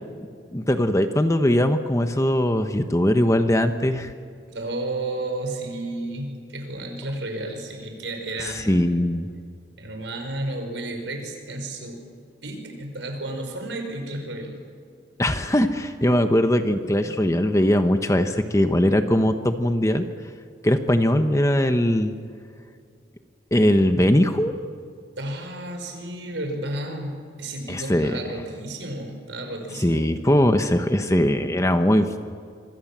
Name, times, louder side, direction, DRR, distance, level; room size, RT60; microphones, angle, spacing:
voice 1, 0.5-4.1 8.5-9.3 15.2-20.1 20.6-22.1 23.5-24.5 27.7-28.2 29.8-32.2, left 1 dB, 15° left, 8 dB, 1.1 m, -20 dB
voice 2, 4.5-8.8 9.8-12.0 12.4-14.6 25.2-30.1, right 2 dB, 85° right, 4 dB, 5.5 m, -32 dB
25.5 x 25.0 x 7.5 m, 2.2 s
head